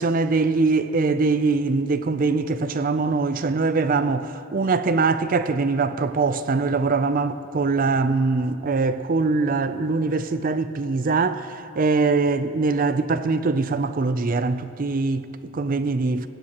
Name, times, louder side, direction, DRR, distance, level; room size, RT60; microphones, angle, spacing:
voice 1, 0.0-16.3, right 3 dB, 40° right, 0.5 m, -22 dB
19.5 x 15.5 x 3.0 m
head